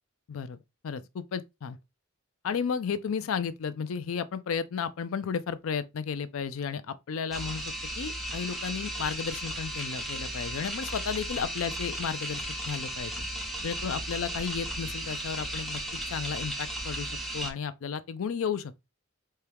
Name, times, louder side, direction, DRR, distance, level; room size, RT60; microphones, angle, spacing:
voice 1, 0.3-0.6 0.8-1.8 2.4-13.1 13.6-15.8 16.1-18.7, left 6 dB, 80° left, 0.4 m, -33 dB
sound 1, 7.3-17.5, right 1 dB, ahead, 0.7 m, -35 dB
4.3 x 2.3 x 3.4 m
head